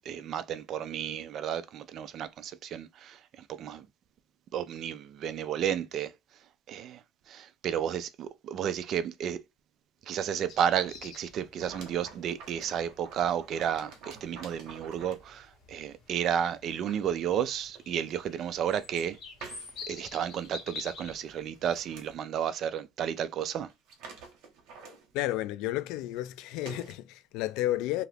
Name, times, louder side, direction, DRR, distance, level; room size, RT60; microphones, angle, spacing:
voice 1, 0.1-3.9 4.5-6.1 6.7-9.4 10.1-19.2 19.9-23.7, right 9 dB, 40° right, 0.3 m, -32 dB
sound 1, 10.5-22.2, left 4 dB, 45° left, 1.4 m, -49 dB
sound 2, 11.6-15.3 16.1-16.2 16.6-17.1 17.7-17.8 18.6-19.0 19.4-20.0 20.4-20.5 20.8-20.9 21.2-22.1 23.0-23.1 23.4-23.5 23.7-25.4 26.1-26.2 26.6-26.9, right 4 dB, 60° right, 1.0 m, -48 dB
voice 2, 25.1-28.0, left 15 dB, 65° left, 0.3 m, -32 dB
2.8 x 2.4 x 3.2 m
cardioid pair, 160°, 0 cm